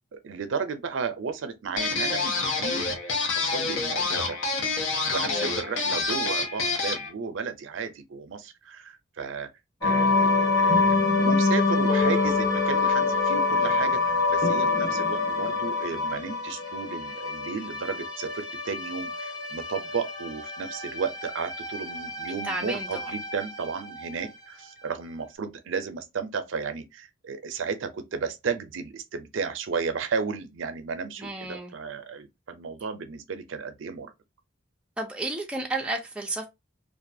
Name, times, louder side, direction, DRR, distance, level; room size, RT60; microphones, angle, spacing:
voice 1, 0.1-2.9 3.2-4.4 5.1-9.5 9.8-34.1, right 5 dB, 75° right, 0.4 m, -33 dB
sound 1, 1.8-7.1, left 3 dB, 75° left, 0.7 m, -27 dB
sound 2, 9.8-24.3, left 3 dB, 20° left, 1.1 m, -26 dB
voice 2, 22.4-23.1 31.2-31.7 35.0-36.5, right 2 dB, 5° right, 0.4 m, -32 dB
2.4 x 2.3 x 2.6 m
head